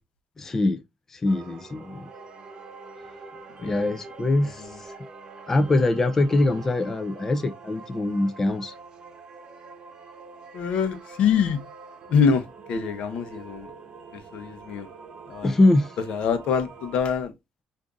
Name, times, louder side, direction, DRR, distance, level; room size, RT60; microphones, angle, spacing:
voice 1, 0.4-0.8 1.1-2.1 3.6-4.9 5.5-8.7 15.4-16.0, left 2 dB, 20° left, 0.3 m, -23 dB
sound 1, 1.3-17.0, right 4 dB, 40° right, 0.9 m, -45 dB
voice 2, 4.4-4.8 10.5-11.6 12.1-13.7 14.1-14.9 15.3-15.5 16.0-17.3, left 6 dB, 65° left, 0.7 m, -25 dB
5.0 x 2.5 x 2.3 m
cardioid pair, 145°, 2 cm